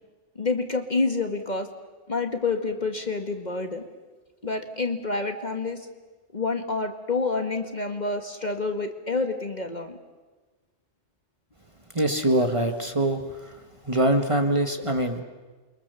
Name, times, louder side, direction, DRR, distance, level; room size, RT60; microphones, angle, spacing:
voice 1, 0.3-1.7 2.1-3.8 4.4-5.9 6.3-10.0, left 3 dB, 35° left, 6 dB, 1.7 m, -28 dB
voice 2, 11.9-13.5 13.8-15.2, right 1 dB, 25° right, 5 dB, 1.7 m, -24 dB
28.5 x 23.5 x 7.0 m, 1.3 s
omnidirectional pair, 1.3 m